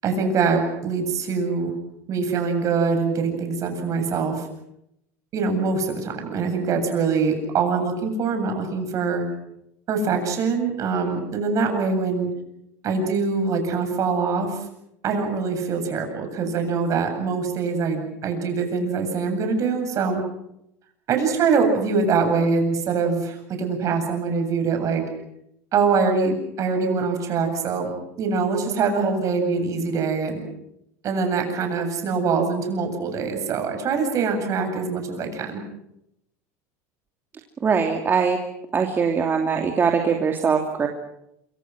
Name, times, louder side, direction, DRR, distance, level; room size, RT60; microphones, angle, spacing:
voice 1, 0.0-1.7 2.1-4.5 5.3-9.2 9.9-12.3 12.8-14.6 15.0-20.2 21.1-25.0 25.7-27.9 28.2-30.4 31.0-35.6, right 4 dB, 45° right, 5 dB, 7.9 m, -23 dB
voice 2, 37.6-38.4 38.7-40.9, right 6 dB, 25° right, 3 dB, 2.8 m, -21 dB
27.0 x 25.0 x 6.2 m, 0.79 s
supercardioid pair, 105°, 8 cm